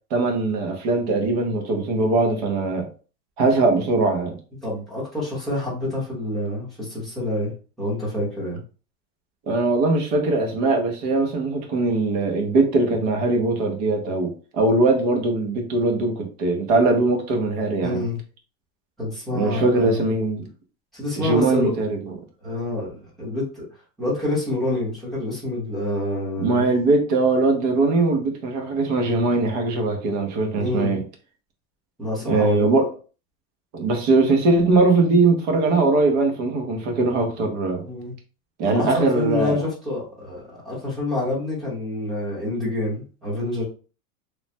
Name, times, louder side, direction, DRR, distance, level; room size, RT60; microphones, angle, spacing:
voice 1, 0.1-2.9 3.4-4.4 9.5-18.0 19.3-20.5 21.2-22.1 26.4-31.0 32.2-32.9 33.7-37.8 38.6-39.6, right 3 dB, 30° right, 0.5 m, -21 dB
voice 2, 4.6-7.5 7.8-8.6 17.8-18.2 19.0-20.0 20.9-21.7 22.4-23.7 24.0-26.7 30.5-31.0 32.0-32.7 37.8-38.1 38.6-43.6, left 2 dB, ahead, 0.8 m, -27 dB
3.1 x 2.0 x 2.6 m
supercardioid pair, 170°, 44 cm